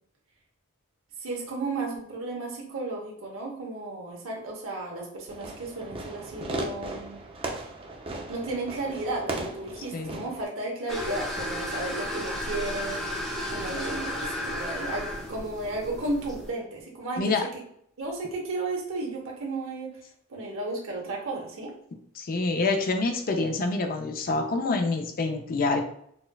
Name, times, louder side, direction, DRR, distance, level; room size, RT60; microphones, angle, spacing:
voice 1, 1.2-7.2 8.3-13.2 13.5-17.6 18.0-19.9 20.3-21.7, right 2 dB, 65° right, -2 dB, 0.9 m, -34 dB
Fireworks, 5.3-10.4, right 2 dB, 25° right, 0.4 m, -36 dB
voice 2, 9.9-10.3 17.2-17.4 22.1-25.8, left 3 dB, 40° left, 4 dB, 0.4 m, -27 dB
sound 1, 10.9-16.5, left 1 dB, ahead, 0.8 m, -33 dB
4.2 x 2.3 x 2.2 m, 0.68 s
head